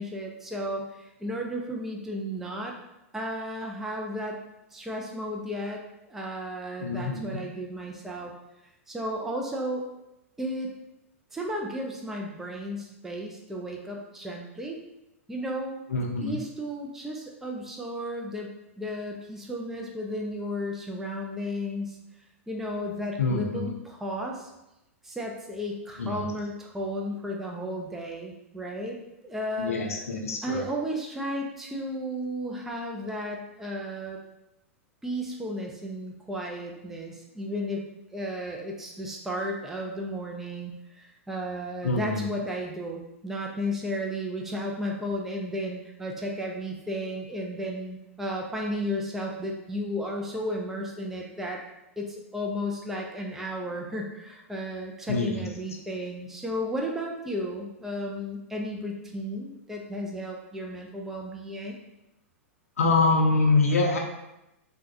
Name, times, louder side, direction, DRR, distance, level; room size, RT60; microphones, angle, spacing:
voice 1, 0.0-2.7 3.1-4.4 4.7-8.3 8.9-9.9 10.4-10.7 11.3-14.8 15.3-15.8 16.2-22.0 22.5-24.5 25.0-29.0 29.2-30.0 30.4-34.2 35.0-37.9 38.1-51.6 52.0-61.8, equal, 5° right, -1 dB, 0.3 m, -34 dB
voice 2, 6.8-7.4 15.9-16.4 23.2-23.7 26.0-26.2 29.6-30.7 41.8-42.3 55.1-55.5 62.8-64.0, left 3 dB, 85° left, 1 dB, 0.5 m, -25 dB
3.3 x 2.1 x 2.7 m, 0.92 s
hypercardioid pair, 110°, 8 cm